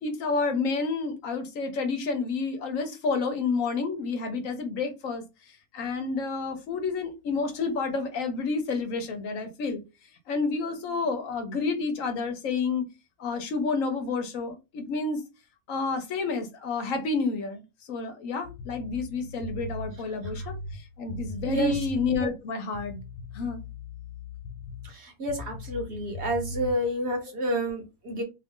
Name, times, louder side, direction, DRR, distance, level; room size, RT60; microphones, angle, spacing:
voice 1, 0.0-5.2 5.7-9.8 10.3-12.9 13.2-15.2 15.7-23.0 23.3-23.6, left 4 dB, 70° left, 6 dB, 1.1 m, -29 dB
sound 1, 18.4-22.4 22.7-25.0 25.3-26.7, left 2 dB, 90° left, 1.1 m, -39 dB
voice 2, 21.4-21.9 24.8-28.2, right 1 dB, 50° right, 2 dB, 1.3 m, -30 dB
3.0 x 2.4 x 3.6 m, 0.26 s
omnidirectional pair, 1.5 m